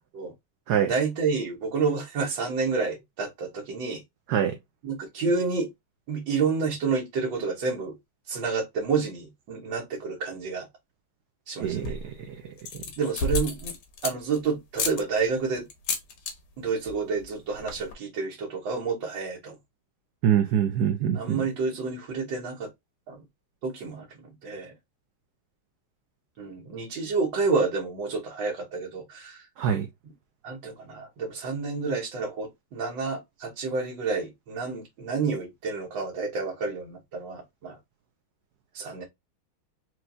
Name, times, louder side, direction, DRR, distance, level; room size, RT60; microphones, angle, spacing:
voice 1, 0.9-4.0 4.8-5.7 6.1-7.9 8.3-10.7 11.5-11.9 13.0-13.7 14.0-15.7 16.6-19.5 21.1-22.7 23.1-23.2 23.6-24.7 26.4-29.5 30.4-37.8 38.7-39.0, right 4 dB, 65° right, 1.6 m, -29 dB
sound 1, 11.6-12.1 12.6-14.4 14.7-15.0 15.7-16.3 16.6-16.9 17.2-17.3 17.5-17.9, left 3 dB, 70° left, 1.7 m, -31 dB
voice 2, 11.6-12.5 20.2-21.4 29.6-29.9, right 9 dB, 85° right, 0.8 m, -25 dB
4.6 x 3.0 x 2.6 m
omnidirectional pair, 2.3 m